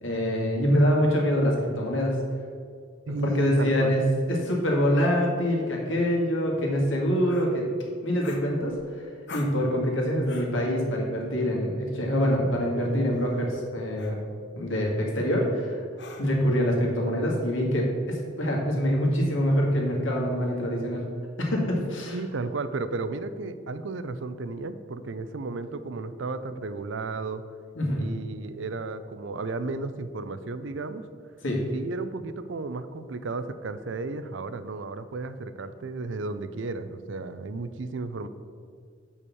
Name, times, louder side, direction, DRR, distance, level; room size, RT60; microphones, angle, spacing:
voice 1, 0.0-2.1 3.1-7.7 8.0-14.2 14.5-15.8 16.2-21.0 21.4-22.2 27.8-28.0 31.4-31.6, equal, 85° left, -2 dB, 2.0 m, -25 dB
voice 2, 3.1-4.0 22.1-27.4 28.0-31.0 31.7-38.3, right 3 dB, 75° right, 12 dB, 0.5 m, -33 dB
sound 1, 7.3-7.5 8.2-8.9 9.3-9.6 10.2-10.6 12.1-12.3 13.1-13.4 14.0-14.2 16.0-16.5, left 2 dB, 60° left, 1.0 m, -43 dB
6.3 x 5.5 x 7.1 m, 2.2 s
head